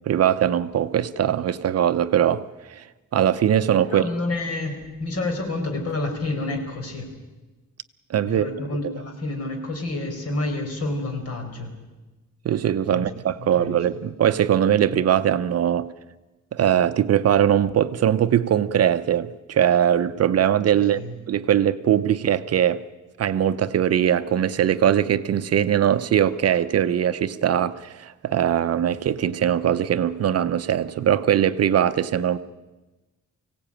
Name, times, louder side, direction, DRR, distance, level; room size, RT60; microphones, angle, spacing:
voice 1, 0.0-2.4 2.7-2.8 3.1-4.0 8.1-8.5 12.4-15.9 16.5-21.0 21.3-22.8 23.2-32.4, right 10 dB, 50° right, 0.7 m, -21 dB
voice 2, 3.8-7.1 8.2-11.7 12.9-13.1 13.4-13.8 20.7-21.1, left 2 dB, 50° left, 4.9 m, -29 dB
24.5 x 17.0 x 8.9 m
wide cardioid pair, 170°, 31 cm